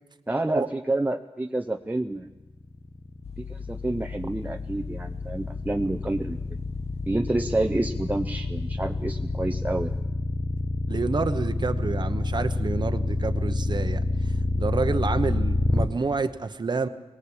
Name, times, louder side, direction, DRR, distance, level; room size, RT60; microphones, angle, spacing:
voice 1, 0.3-2.3 3.4-6.6 7.1-9.9, right 2 dB, 15° right, 5 dB, 0.7 m, -28 dB
sound 1, 2.6-15.9, left 2 dB, 25° left, 1.1 m, -28 dB
sound 2, 3.2-10.0, left 6 dB, 80° left, 2.3 m, -38 dB
voice 2, 10.9-16.9, right 4 dB, 45° right, 8 dB, 1.0 m, -29 dB
23.0 x 19.0 x 8.7 m, 1.1 s
wide cardioid pair, 125°, 10 cm